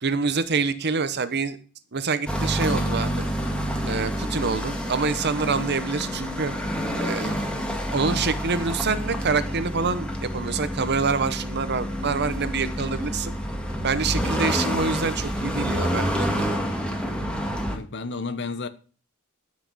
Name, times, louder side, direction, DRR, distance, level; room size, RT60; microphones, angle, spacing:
voice 1, 0.0-1.6 1.9-3.2 3.8-6.5 7.0-7.5 7.9-13.3 13.8-16.5, right 4 dB, 50° right, 0.9 m, -26 dB
sound 1, 2.3-17.8, equal, 5° left, 1.9 m, -28 dB
voice 2, 5.4-5.7 17.7-18.7, left 3 dB, 55° left, 1.1 m, -32 dB
13.0 x 6.2 x 6.3 m
head